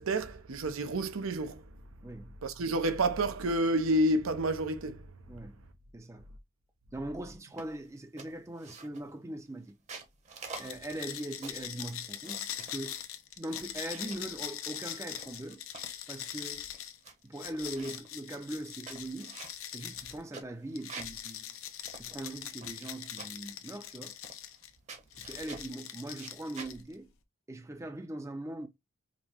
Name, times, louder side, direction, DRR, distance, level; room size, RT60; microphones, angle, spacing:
voice 1, 0.0-1.6 2.4-5.1, right 1 dB, 80° right, 0.7 m, -29 dB
voice 2, 2.0-2.3 5.3-5.6 5.9-6.3 6.9-9.7 10.6-13.0 13.4-15.6 16.1-16.7 17.2-19.4 19.7-21.6 22.0-24.1 25.2-27.1 27.5-28.7, right 1 dB, 15° right, 0.5 m, -41 dB
sound 1, 7.6-7.9 8.2-9.1 9.7-11.7 12.2-13.1 13.5-14.3 14.9-16.0 16.4-16.5 16.7-17.1 17.4-18.1 18.6-21.2 21.5-21.6 21.9-22.9 23.2-23.5 24.2-24.6 24.9-25.7 26.1-26.7, right 4 dB, 35° right, 0.9 m, -48 dB
sound 2, 10.5-20.2 20.8-24.7 25.1-26.9, left 10 dB, 75° left, 0.6 m, -42 dB
5.1 x 2.1 x 2.8 m
head